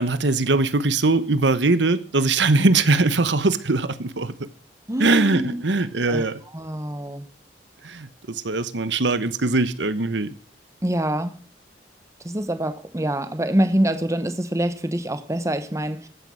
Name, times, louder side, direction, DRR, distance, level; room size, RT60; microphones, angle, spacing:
voice 1, 0.0-4.3 5.0-6.4 7.8-10.3, right 3 dB, 80° right, 1.1 m, -21 dB
voice 2, 4.9-5.6 6.1-6.2 6.5-7.2 10.8-11.4 12.2-16.1, right 1 dB, 15° right, 1.1 m, -25 dB
15.0 x 9.6 x 6.3 m
head